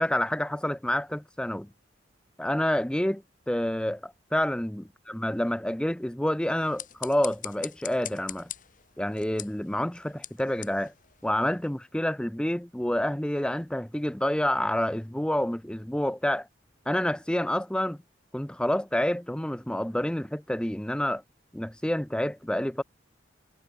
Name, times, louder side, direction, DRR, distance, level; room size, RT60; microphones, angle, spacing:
voice 1, 0.0-1.7 2.4-8.5 9.0-10.9 11.2-16.5 16.9-18.0 18.3-21.2 21.5-22.8, left 1 dB, 5° left, 0.5 m, -28 dB
sound 1, 6.5-11.8, left 12 dB, 45° left, 3.0 m, -43 dB
head